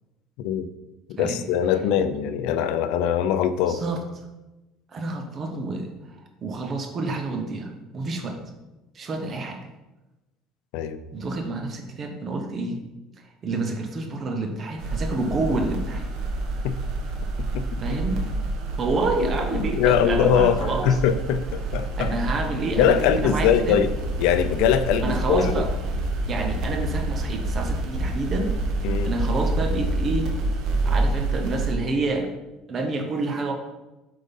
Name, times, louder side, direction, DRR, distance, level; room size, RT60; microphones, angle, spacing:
voice 1, 0.4-0.7 1.2-3.8 10.7-11.0 16.6-16.7 17.5-17.6 19.2-22.1 22.7-25.6 28.8-29.1, left 8 dB, 70° left, 11 dB, 0.6 m, -22 dB
voice 2, 3.7-4.0 4.9-5.9 6.4-8.4 8.9-9.6 11.1-12.8 13.4-16.1 17.8-18.2 18.8-21.0 22.0-23.8 25.0-25.7 26.3-28.5 29.0-30.3 30.8-32.3 32.7-33.5, right 3 dB, 30° right, 4 dB, 1.0 m, -28 dB
sound 1, 14.8-31.7, right 2 dB, 60° right, 1.2 m, -27 dB
7.9 x 3.8 x 5.4 m, 1.0 s
cardioid pair, 165°, 0 cm